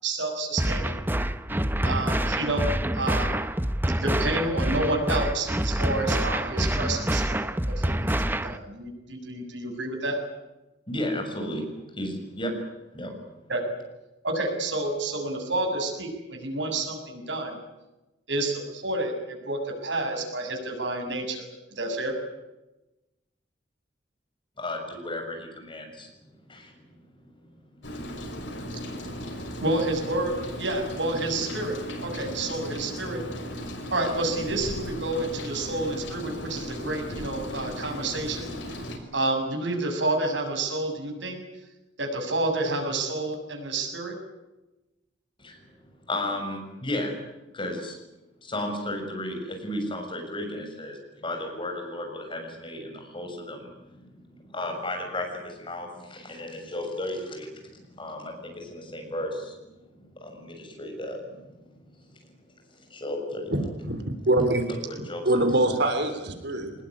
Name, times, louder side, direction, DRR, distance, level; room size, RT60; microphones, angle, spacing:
voice 1, 0.0-1.0 1.8-3.4 4.0-10.2 13.5-13.6 14.2-17.6 18.3-21.5 21.8-22.1 29.6-33.2 33.9-38.9 39.1-41.4 42.0-44.2, right 2 dB, 80° right, 3 dB, 7.2 m, -29 dB
sound 1, 0.6-8.6, right 1 dB, 10° right, 1.0 m, -26 dB
voice 2, 10.9-12.6 12.9-13.2 24.6-26.7 45.4-45.6 46.1-47.1 47.5-48.0 48.4-61.5 62.1-62.2 62.9-63.5 64.7-65.2, left 1 dB, 30° left, 3 dB, 6.9 m, -34 dB
Rain, 27.8-39.0, equal, 90° left, 5.9 m, -36 dB
voice 3, 63.5-64.7 65.2-66.7, right 1 dB, 65° right, 8 dB, 3.3 m, -24 dB
25.0 x 20.0 x 9.9 m, 1.0 s
head